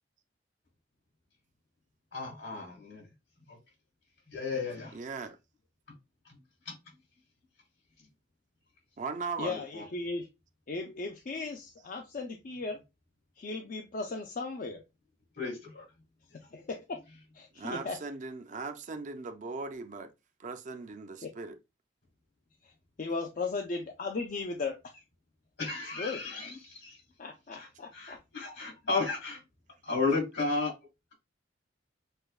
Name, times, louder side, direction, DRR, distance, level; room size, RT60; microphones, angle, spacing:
voice 1, 2.1-3.1 3.5-3.6 4.3-5.0 6.7-6.8 9.5-9.8 15.4-15.8 25.6-27.0 27.5-27.7 27.9-29.4 29.8-30.7, left 4 dB, 80° left, 2.4 m, -33 dB
voice 2, 4.9-5.4 9.0-9.6 17.6-20.1 20.4-21.6, right 4 dB, 40° right, 0.5 m, -38 dB
voice 3, 9.4-10.3 10.7-12.8 13.4-14.8 16.5-17.0 17.3-18.0 21.2-21.3 22.6-22.7 23.0-25.0 25.8-26.3 27.2-28.2, left 3 dB, 45° left, 0.4 m, -36 dB
6.5 x 2.2 x 2.3 m
head